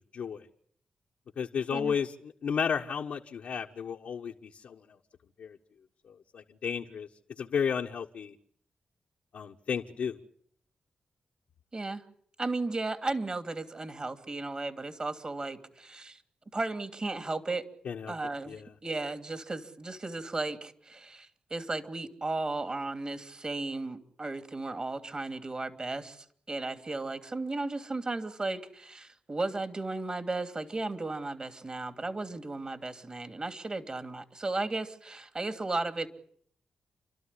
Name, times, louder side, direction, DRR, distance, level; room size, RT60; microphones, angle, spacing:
voice 1, 0.1-0.5 1.4-5.0 5.4-5.6 6.1-7.1 7.4-8.3 9.3-10.2 17.8-18.1 18.5-18.7, left 7 dB, 80° left, 1 dB, 1.3 m, -33 dB
voice 2, 11.7-12.0 12.4-16.2 16.5-17.6 18.1-36.1, right 2 dB, 35° right, 9 dB, 2.9 m, -35 dB
30.0 x 12.5 x 9.9 m, 0.64 s
cardioid pair, 55°, 2 cm